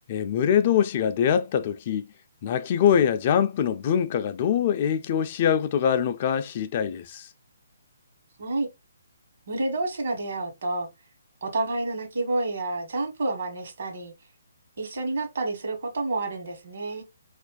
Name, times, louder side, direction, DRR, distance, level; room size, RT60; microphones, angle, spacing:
voice 1, 0.1-2.1 2.4-7.3, left 8 dB, 40° left, 0.3 m, -23 dB
voice 2, 9.5-10.9 11.4-14.1 14.8-17.0, right 2 dB, 65° right, 1.2 m, -29 dB
4.4 x 2.5 x 2.3 m
figure-of-eight pair, 145°, 0 cm